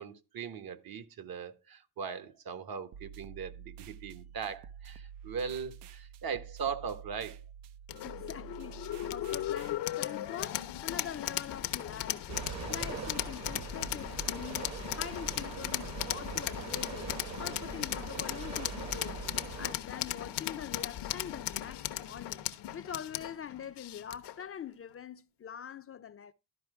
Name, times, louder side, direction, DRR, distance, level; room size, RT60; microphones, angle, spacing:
voice 1, 0.0-7.4, right 6 dB, 60° right, 1.1 m, -39 dB
sound 1, 2.9-9.8, right 8 dB, 80° right, 0.6 m, -49 dB
sound 2, 7.9-24.4, left 13 dB, 90° left, 0.8 m, -37 dB
voice 2, 8.0-14.7 14.9-17.1 17.4-19.2 19.6-22.5 22.7-26.3, left 9 dB, 35° left, 0.4 m, -44 dB
sound 3, 12.3-19.7, right 6 dB, 40° right, 0.9 m, -42 dB
12.0 x 4.9 x 4.6 m
cardioid pair, 100°, 40 cm